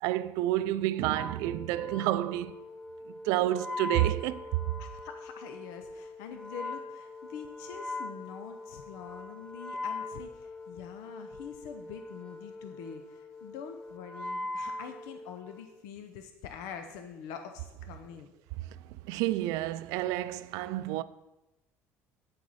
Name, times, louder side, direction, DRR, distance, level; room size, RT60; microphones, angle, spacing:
voice 1, 0.0-2.7 3.1-4.7 18.6-21.0, right 14 dB, 80° right, 0.4 m, -30 dB
Wind instrument woodwind instrument, 1.0-15.7, left 2 dB, 15° left, 0.6 m, -41 dB
voice 2, 4.8-18.3, left 7 dB, 90° left, 0.8 m, -45 dB
9.6 x 7.6 x 4.2 m
cardioid pair, 165°, 6 cm